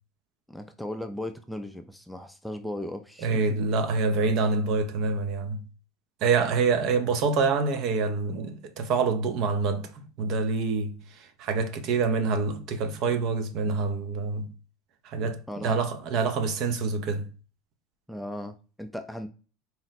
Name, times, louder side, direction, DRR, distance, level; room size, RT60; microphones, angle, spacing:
voice 1, 0.5-3.6 15.5-15.8 18.1-19.3, left 1 dB, ahead, 0.3 m, -37 dB
voice 2, 3.2-5.6 6.2-14.5 15.0-17.3, right 4 dB, 55° right, 0.6 m, -26 dB
4.2 x 2.0 x 4.0 m
supercardioid pair, 115°, 0 cm